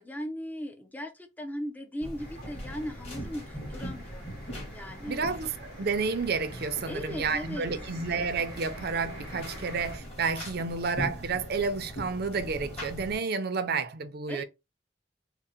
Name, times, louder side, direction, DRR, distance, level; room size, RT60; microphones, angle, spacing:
voice 1, 0.0-4.3 4.7-5.2 6.9-7.9 14.3-14.4, equal, 10° left, 0.5 m, -38 dB
sound 1, 2.0-13.2, equal, 35° left, 1.7 m, -41 dB
sound 2, 2.2-10.0, equal, 50° left, 2.0 m, -46 dB
voice 2, 5.1-14.4, right 5 dB, 60° right, 0.5 m, -30 dB
3.7 x 2.1 x 4.2 m
head